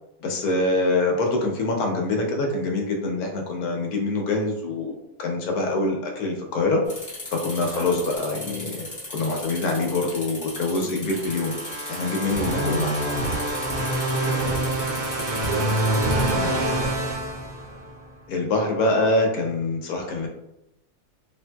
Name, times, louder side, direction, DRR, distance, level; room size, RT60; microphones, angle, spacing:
voice 1, 0.2-6.8 7.3-11.5 11.9-13.0 18.3-20.3, left 2 dB, 75° left, 1 dB, 1.1 m, -25 dB
sound 1, 6.8-16.3, left 2 dB, 15° left, 0.6 m, -37 dB
sound 2, 11.1-18.0, right 1 dB, 65° right, 1.1 m, -26 dB
voice 2, 14.2-16.9, right 3 dB, 80° right, -3 dB, 1.4 m, -35 dB
3.3 x 2.6 x 2.2 m, 0.87 s
omnidirectional pair, 1.7 m